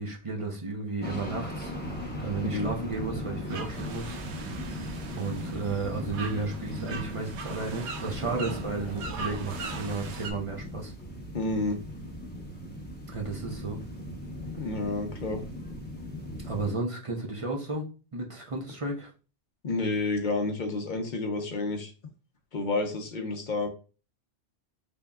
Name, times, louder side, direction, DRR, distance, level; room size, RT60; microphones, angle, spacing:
voice 1, 0.0-1.7 2.2-4.2 5.1-10.9 13.1-13.8 16.4-17.9 18.1-19.1, right 3 dB, 35° right, 0 dB, 0.7 m, -33 dB
sound 1, 1.0-16.7, left 1 dB, 10° left, 0.8 m, -38 dB
sound 2, 3.5-10.3, right 5 dB, 80° right, 1.0 m, -41 dB
voice 2, 11.3-11.8 14.6-15.4 19.6-21.9 22.5-23.7, left 3 dB, 50° left, 5 dB, 0.8 m, -30 dB
3.8 x 3.5 x 2.3 m, 0.34 s
omnidirectional pair, 1.1 m